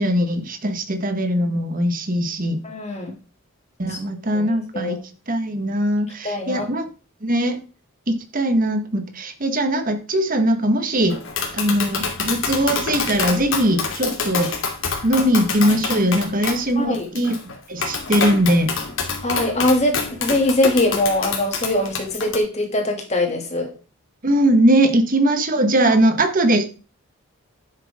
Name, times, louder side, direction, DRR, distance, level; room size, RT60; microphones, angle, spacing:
voice 1, 0.0-2.6 3.8-5.0 5.3-6.9 7.2-7.6 8.1-11.2 11.5-14.5 15.0-17.3 17.7-18.7 24.2-26.7, right 1 dB, 40° right, 7 dB, 1.7 m, -20 dB
voice 2, 2.6-3.1 3.9-4.0 4.3-5.0 6.2-6.7 16.8-17.1 19.2-23.7 25.8-25.9, left 1 dB, 30° left, 2 dB, 2.8 m, -22 dB
Tap, 11.1-22.4, left 5 dB, 65° left, 2.6 m, -27 dB
11.0 x 7.5 x 3.8 m, 0.34 s
head